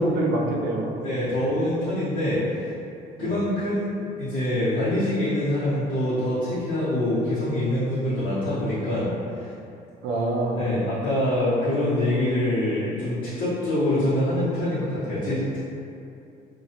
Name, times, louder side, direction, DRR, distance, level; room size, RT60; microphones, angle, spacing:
voice 1, 0.0-1.0 1.2-1.4 3.2-3.4 10.0-10.6, right 1 dB, 80° right, -2 dB, 0.5 m, -26 dB
voice 2, 1.0-2.7 3.2-9.1 9.4-9.5 10.5-15.6, left 1 dB, 60° left, -14 dB, 0.8 m, -25 dB
2.2 x 2.0 x 2.8 m, 2.6 s
cardioid pair, 110°, 17 cm